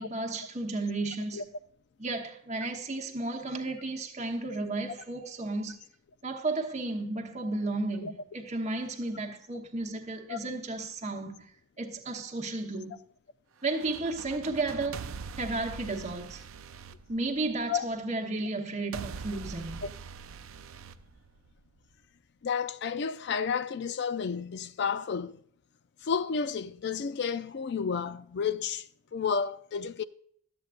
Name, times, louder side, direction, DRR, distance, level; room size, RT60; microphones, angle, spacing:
voice 1, 0.0-1.4 2.0-5.8 6.2-11.5 11.8-13.0 13.6-16.4 17.1-19.8, right 2 dB, 35° right, 1.0 m, -33 dB
sound 1, 13.6-17.8 18.9-21.8, right 5 dB, 75° right, 0.5 m, -43 dB
voice 2, 22.4-25.4 26.0-30.0, left 6 dB, 55° left, 0.4 m, -31 dB
12.5 x 7.9 x 2.5 m
head